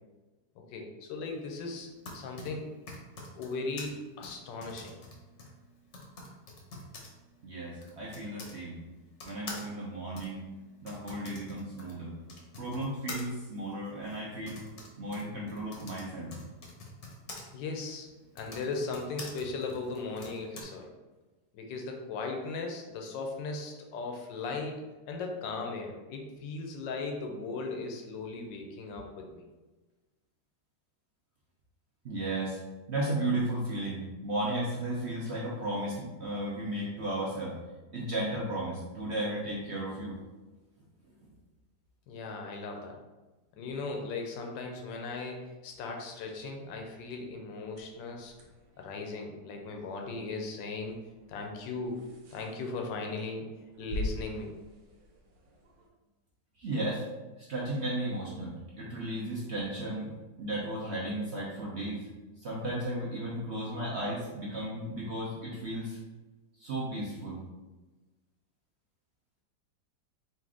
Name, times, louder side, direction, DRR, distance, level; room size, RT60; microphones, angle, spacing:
voice 1, 0.6-2.7 3.3-5.0 17.5-18.1 18.3-20.9 21.5-29.4 42.1-43.0 43.6-48.3 48.8-51.0 51.3-52.0 52.3-53.5 53.8-54.5, left 3 dB, 90° left, 2 dB, 1.4 m, -37 dB
Typing, 1.8-8.6 9.2-17.4 18.2-20.6, left 2 dB, 55° left, 0.9 m, -47 dB
voice 2, 7.4-8.8 9.2-10.5 10.8-12.1 12.6-14.6 15.0-16.3 32.0-32.6 32.9-37.5 37.9-40.2 56.6-57.1 57.4-62.1 62.4-66.0 66.6-67.4, right 1 dB, 60° right, -5 dB, 0.7 m, -34 dB
sound 1, 47.6-55.9, left 1 dB, 75° right, 1.4 m, -44 dB
4.1 x 2.6 x 3.7 m, 1.2 s
omnidirectional pair, 2.0 m